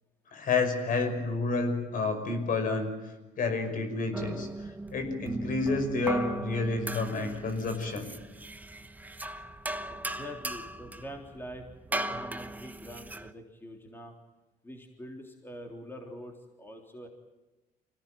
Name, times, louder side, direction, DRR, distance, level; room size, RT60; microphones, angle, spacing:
voice 1, 0.3-2.9 3.4-4.5 4.9-8.1, left 3 dB, 55° left, 7 dB, 5.7 m, -29 dB
sound 1, 4.1-13.3, right 1 dB, 10° right, 1.1 m, -38 dB
voice 2, 9.9-11.7 11.9-14.2 14.6-16.3 16.6-17.1, equal, 15° left, 2 dB, 3.5 m, -44 dB
26.0 x 17.5 x 9.2 m, 1.1 s
cardioid pair, 110°, 17 cm